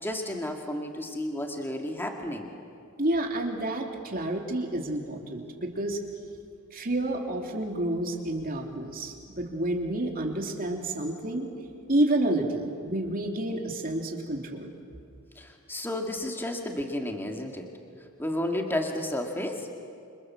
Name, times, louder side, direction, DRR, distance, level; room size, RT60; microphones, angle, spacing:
voice 1, 0.0-2.5 15.4-17.7 18.2-19.7, left 1 dB, 10° left, 2 dB, 2.0 m, -32 dB
voice 2, 3.0-6.0 6.7-11.5 11.9-14.7, right 1 dB, 40° right, 2 dB, 3.1 m, -29 dB
29.0 x 27.5 x 7.5 m, 2.5 s
head